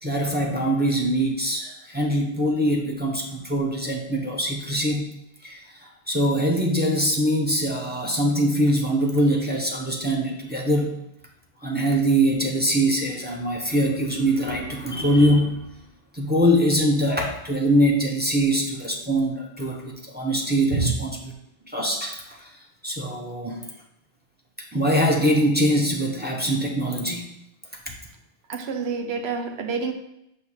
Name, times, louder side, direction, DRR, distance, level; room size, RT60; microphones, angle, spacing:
voice 1, 0.0-5.1 5.4-5.8 6.1-10.9 11.6-15.6 16.1-21.1 21.7-22.5 22.8-23.6 24.7-27.3 27.9-28.0, equal, 10° right, -1 dB, 0.8 m, -23 dB
voice 2, 28.5-29.9, right 5 dB, 85° right, 7 dB, 0.9 m, -27 dB
6.6 x 2.8 x 5.5 m, 0.82 s
omnidirectional pair, 1.0 m